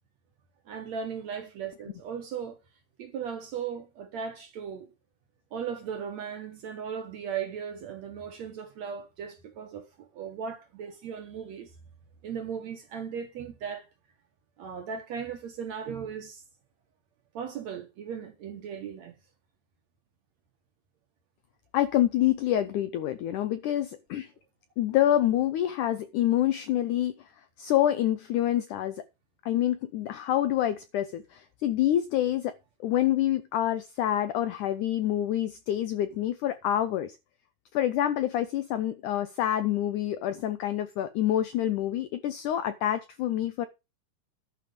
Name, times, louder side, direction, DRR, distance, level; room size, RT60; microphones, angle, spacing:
voice 1, 0.7-2.6 3.0-4.9 5.5-11.7 12.2-13.9 14.6-16.4 17.3-19.2, right 7 dB, 60° right, 1.9 m, -37 dB
voice 2, 21.7-24.3 24.8-27.1 27.6-29.0 29.5-32.5 32.8-37.2 37.7-43.7, left 12 dB, 80° left, 1.8 m, -27 dB
11.5 x 5.1 x 6.8 m
omnidirectional pair, 4.4 m